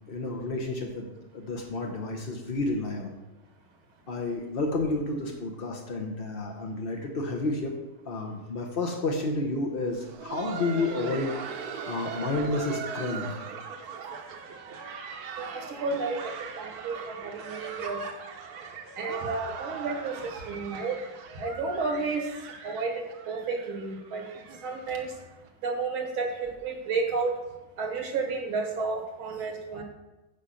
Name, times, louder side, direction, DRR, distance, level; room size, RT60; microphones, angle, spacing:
voice 1, 0.1-3.1 4.1-7.7 8.0-11.4 11.9-13.3, left 2 dB, 55° left, 1 dB, 0.6 m, -30 dB
Laughter, 9.8-25.5 25.8-25.9 26.4-26.6 27.1-27.3 28.4-28.5, right 6 dB, 60° right, 1.1 m, -40 dB
voice 2, 15.4-18.1 19.0-21.0 21.3-22.3 22.6-24.3 24.6-25.2 25.6-27.4 27.8-29.8, right 4 dB, 85° right, 3 dB, 2.2 m, -32 dB
9.1 x 5.1 x 5.7 m, 1.1 s
omnidirectional pair, 2.2 m